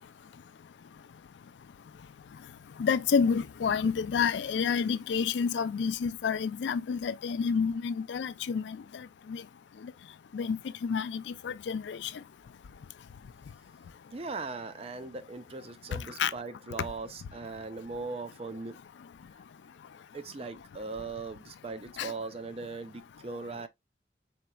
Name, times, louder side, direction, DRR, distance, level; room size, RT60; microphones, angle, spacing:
voice 1, 2.8-9.4 9.8-9.9 10.3-12.1 15.9-16.3 22.0-22.1, left 6 dB, 85° left, 0.4 m, -29 dB
voice 2, 14.1-18.8 20.1-23.7, right 3 dB, 35° right, 0.4 m, -39 dB
4.3 x 3.9 x 2.2 m
head